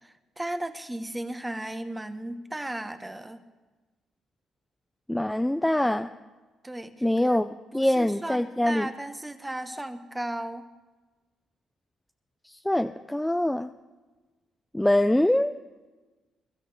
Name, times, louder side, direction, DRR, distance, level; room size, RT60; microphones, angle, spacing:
voice 1, 0.0-3.4 6.6-6.9 7.3-7.4 7.7-10.7, right 1 dB, 10° right, 9 dB, 1.1 m, -35 dB
voice 2, 5.1-6.1 7.0-7.5 7.7-8.9 12.7-13.7 14.7-15.5, left 1 dB, 5° left, 8 dB, 0.4 m, -24 dB
21.5 x 13.0 x 3.4 m, 1.2 s
cardioid pair, 90°, 0 cm